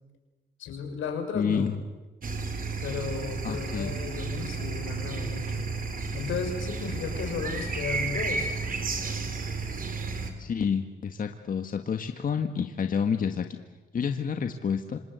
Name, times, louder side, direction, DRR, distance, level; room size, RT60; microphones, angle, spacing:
voice 1, 0.6-1.7 2.8-5.6 6.1-8.5, left 5 dB, 80° left, 5 dB, 6.0 m, -34 dB
voice 2, 1.3-1.8 3.4-4.0 10.4-13.5 13.9-15.0, left 6 dB, 45° left, 6 dB, 1.7 m, -29 dB
sound 1, 2.2-10.3, right 4 dB, 45° right, 4.6 m, -32 dB
27.0 x 26.5 x 8.3 m, 1.2 s
cardioid pair, 90°, 20 cm